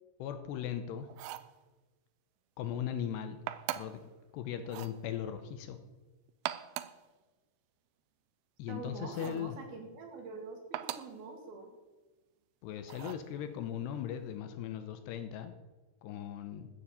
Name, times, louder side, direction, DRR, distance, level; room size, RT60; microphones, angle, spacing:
voice 1, 0.2-1.1 2.6-3.4 3.7-4.0 4.3-5.8 8.6-9.6 12.6-15.5 16.0-16.7, left 9 dB, 80° left, 9 dB, 2.8 m, -38 dB
sound 1, 1.1-1.5 3.5-4.0 4.6-5.0 6.3-7.0 9.1-9.5 10.7-11.2 12.9-13.3, right 14 dB, 90° right, 3.0 m, -41 dB
voice 2, 8.7-11.7, right 4 dB, 60° right, 3 dB, 3.6 m, -45 dB
14.0 x 7.1 x 8.3 m, 1.2 s
omnidirectional pair, 5.2 m